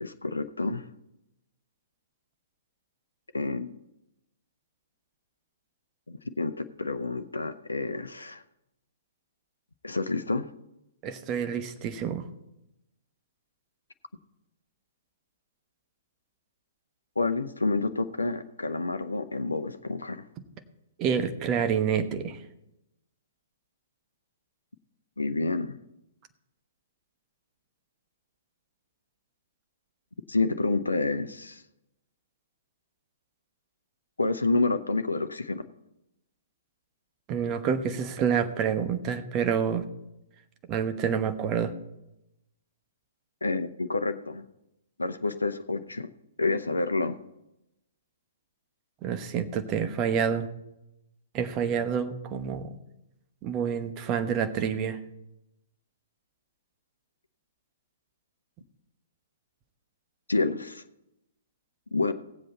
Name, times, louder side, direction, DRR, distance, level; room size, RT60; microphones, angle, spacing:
voice 1, 0.0-0.8 3.3-3.8 6.1-8.4 9.8-10.4 17.2-20.2 25.2-25.8 30.3-31.6 34.2-35.6 43.4-44.5 45.0-46.1 46.4-47.2 60.3-60.8 61.9-62.1, left 3 dB, 75° left, 10 dB, 0.7 m, -28 dB
voice 2, 11.0-12.2 21.0-22.4 37.3-39.8 40.7-41.7 49.0-50.5 51.3-52.7 53.4-55.0, right 7 dB, 25° right, 9 dB, 1.0 m, -28 dB
17.5 x 7.7 x 4.2 m, 0.89 s
figure-of-eight pair, 115°, 0 cm